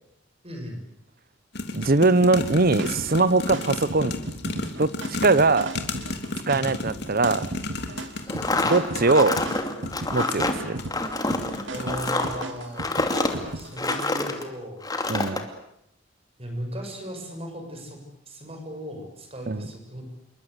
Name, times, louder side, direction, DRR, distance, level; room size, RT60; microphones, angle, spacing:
voice 1, 0.4-0.8 6.4-6.7 8.2-8.4 11.7-14.8 16.4-18.0 18.3-20.0, equal, 30° right, 4 dB, 6.7 m, -37 dB
sound 1, 1.5-12.3 12.9-13.3 13.6-13.7, left 2 dB, 60° left, 3.3 m, -33 dB
voice 2, 1.7-4.1 4.8-4.9 5.2-5.7 6.5-7.4 8.6-9.4 10.1-10.8 15.1-15.4 19.5-19.7, right 3 dB, 50° right, 17 dB, 1.1 m, -21 dB
sound 2, 2.4-14.2, right 2 dB, 70° right, 2.0 m, -37 dB
sound 3, 8.3-14.4 14.8-15.4, left 2 dB, 20° left, 2.7 m, -27 dB
28.0 x 23.5 x 8.2 m, 0.78 s
head